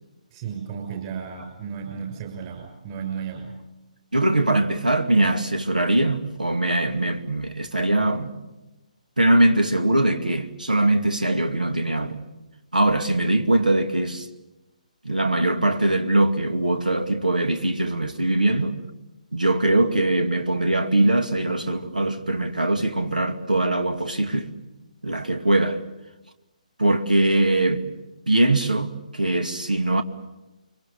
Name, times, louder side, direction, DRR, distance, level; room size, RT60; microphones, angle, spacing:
voice 1, 0.3-3.6, right 7 dB, 30° right, 6.2 m, -34 dB
voice 2, 4.1-8.4 9.2-12.2 12.7-14.3 15.0-18.8 19.3-24.5 25.0-25.8 26.8-27.8 28.3-30.0, right 1 dB, 80° right, 2.3 m, -21 dB
30.0 x 24.0 x 7.0 m
figure-of-eight pair, 140°, 4 cm